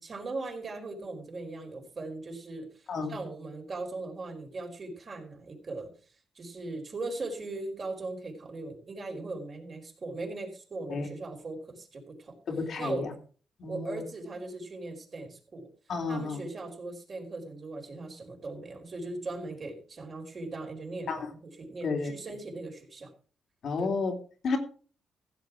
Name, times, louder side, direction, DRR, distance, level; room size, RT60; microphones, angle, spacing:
voice 1, 0.0-5.9 6.3-12.4 12.8-13.0 13.7-15.7 16.1-23.1 23.8-23.9, right 2 dB, 45° right, 4.7 m, -39 dB
voice 2, 12.5-13.1 13.6-14.0 15.9-16.4 21.1-21.3 21.8-22.1 23.6-24.1 24.4-24.6, left 4 dB, 65° left, 3.0 m, -31 dB
15.5 x 8.3 x 4.7 m
cardioid pair, 95°, 0 cm